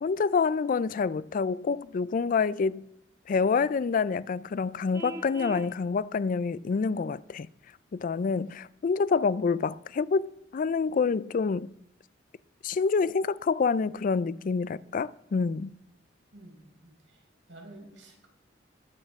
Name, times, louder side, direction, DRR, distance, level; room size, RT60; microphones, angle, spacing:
voice 1, 0.0-2.8 3.3-7.5 7.9-11.7 12.6-15.7, left 5 dB, 45° left, 0.3 m, -27 dB
Vehicle horn car horn honking, 4.9-5.7, right 1 dB, 15° right, 0.9 m, -40 dB
voice 2, 16.3-17.2 17.5-18.3, right 1 dB, 90° right, 4.7 m, -50 dB
20.5 x 8.6 x 3.6 m
head